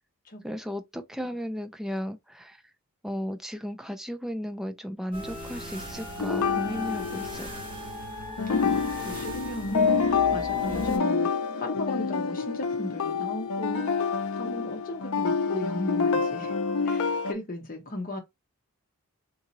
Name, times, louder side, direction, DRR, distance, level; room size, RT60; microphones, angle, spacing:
voice 1, 0.4-2.6 3.0-7.5, equal, ahead, 0.4 m, -35 dB
sound 1, 5.1-11.0, equal, 20° right, 1.5 m, -38 dB
sound 2, 6.2-8.0 8.4-17.3, left 5 dB, 75° left, 0.5 m, -27 dB
voice 2, 8.5-11.3 11.5-13.9 14.3-16.6 16.8-18.2, left 1 dB, 40° left, 0.8 m, -36 dB
3.9 x 2.8 x 2.7 m
head